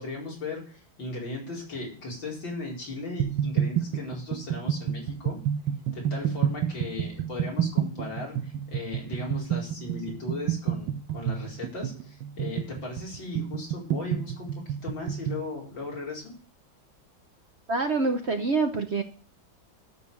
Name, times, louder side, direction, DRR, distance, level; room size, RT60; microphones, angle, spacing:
voice 1, 0.0-5.4 5.9-16.3, left 3 dB, 85° left, -3 dB, 5.4 m, -37 dB
sound 1, 3.2-15.5, right 9 dB, 85° right, 1.6 m, -29 dB
voice 2, 17.7-19.0, right 3 dB, 45° right, 6 dB, 0.9 m, -26 dB
13.0 x 6.7 x 7.1 m, 0.42 s
omnidirectional pair, 2.0 m